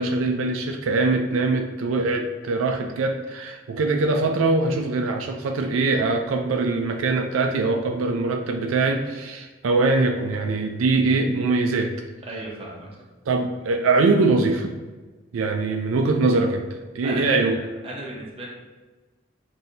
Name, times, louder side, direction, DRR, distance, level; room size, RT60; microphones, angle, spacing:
voice 1, 0.0-11.9 13.3-14.7 15.3-16.7 16.9-17.5, right 3 dB, 90° right, 4 dB, 0.4 m, -22 dB
voice 2, 12.3-12.9 17.0-18.5, right 1 dB, 30° right, -3 dB, 0.8 m, -35 dB
5.7 x 2.7 x 2.6 m, 1.3 s
head